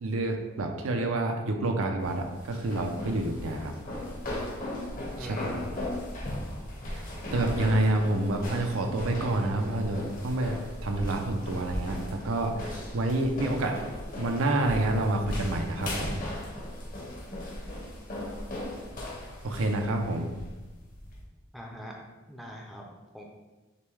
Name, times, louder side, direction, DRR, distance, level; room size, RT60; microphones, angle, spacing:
voice 1, 0.0-3.7 5.2-5.7 6.9-7.1 7.3-13.8 14.2-16.2 19.4-20.3, right 2 dB, 80° right, 4 dB, 0.5 m, -28 dB
sound 1, 2.0-21.2, left 1 dB, 40° left, 0.9 m, -37 dB
voice 2, 5.2-5.7 21.5-22.0 22.3-22.8 23.1-23.2, equal, ahead, -2 dB, 0.5 m, -41 dB
6.6 x 2.3 x 3.1 m, 1.2 s
head